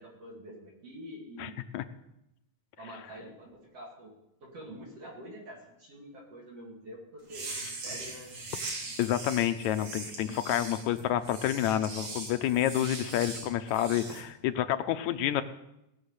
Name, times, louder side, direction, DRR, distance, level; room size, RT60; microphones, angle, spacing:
voice 1, 0.0-1.5 2.8-4.1 4.4-8.3, equal, 55° right, -3 dB, 3.6 m, -46 dB
voice 2, 1.4-1.8 9.0-15.4, left 11 dB, 75° left, 9 dB, 1.9 m, -29 dB
sound 1, 7.2-14.2, right 3 dB, 80° right, 4.2 m, -40 dB
18.0 x 6.2 x 8.1 m, 0.87 s
omnidirectional pair, 3.5 m